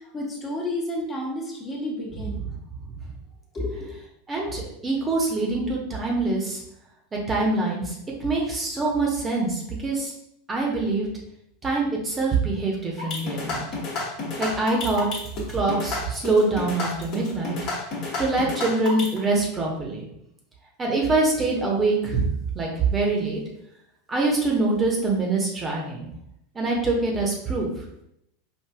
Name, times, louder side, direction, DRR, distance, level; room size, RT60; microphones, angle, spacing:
voice 1, 0.0-2.4 3.5-3.9, left 1 dB, 25° left, -3 dB, 1.0 m, -31 dB
voice 2, 4.3-6.6 7.3-10.1 10.5-11.1 11.6-13.7 14.4-15.1 15.5-17.6 18.2-20.0 20.8-22.2 22.5-23.4 24.1-26.1 26.5-27.7, right 3 dB, 20° right, -2 dB, 0.9 m, -24 dB
sound 1, 13.0-19.2, left 2 dB, 45° left, 1.1 m, -30 dB
4.8 x 2.5 x 2.3 m, 0.76 s
figure-of-eight pair, 85°, 0 cm